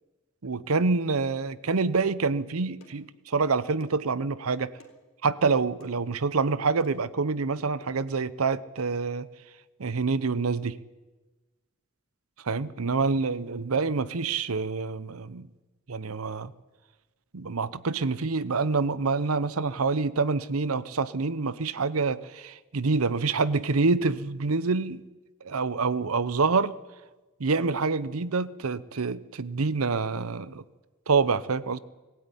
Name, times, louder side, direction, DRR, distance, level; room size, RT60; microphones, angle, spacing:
voice 1, 0.4-4.7 5.2-9.3 9.8-10.8 12.4-15.5 15.9-16.5 17.3-25.0 25.4-26.7 27.4-30.6 31.1-31.8, right 4 dB, 90° right, 17 dB, 0.8 m, -27 dB
sound 1, 1.8-2.0 2.8-3.1 3.8-4.1 4.8-5.0 5.8-6.0 6.8-7.1 7.8-8.0 8.8-8.9, left 1 dB, 80° left, 3.6 m, -52 dB
20.0 x 15.5 x 9.9 m, 1.2 s
head